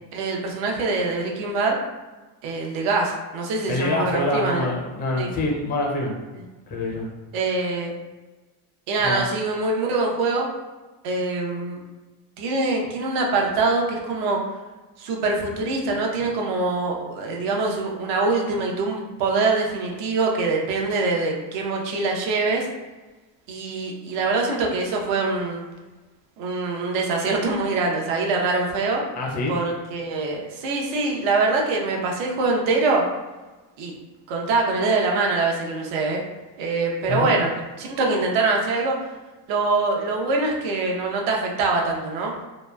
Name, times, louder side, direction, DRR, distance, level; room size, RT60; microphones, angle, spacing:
voice 1, 0.1-1.8 2.4-4.7 5.2-5.3 7.3-7.9 8.9-10.5 11.0-11.8 12.4-14.4 15.0-22.7 23.5-25.6 26.4-29.0 29.5-33.0 33.8-33.9 34.3-36.2 36.6-37.5 37.8-39.0 39.5-42.3, right 3 dB, 65° right, 0 dB, 0.8 m, -24 dB
voice 2, 3.7-6.1 6.7-7.1 9.0-9.2 29.1-29.5 37.1-37.3, left 2 dB, 20° left, -2 dB, 0.4 m, -25 dB
3.0 x 2.1 x 2.2 m, 1.2 s
supercardioid pair, 105°, 50 cm